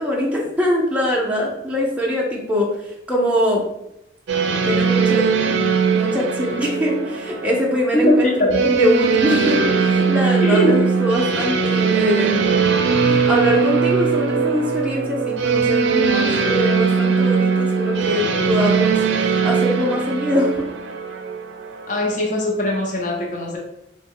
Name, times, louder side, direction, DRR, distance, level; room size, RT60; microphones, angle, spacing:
voice 1, 0.0-3.6 4.6-5.6 5.9-12.5 13.1-20.7, left 1 dB, 5° right, -3 dB, 0.5 m, -22 dB
sound 1, 4.3-22.4, right 5 dB, 80° right, 0.4 m, -20 dB
voice 2, 7.9-8.6 10.4-10.8 21.9-23.6, equal, 45° left, -1 dB, 0.5 m, -20 dB
3.7 x 2.0 x 3.6 m, 0.83 s
head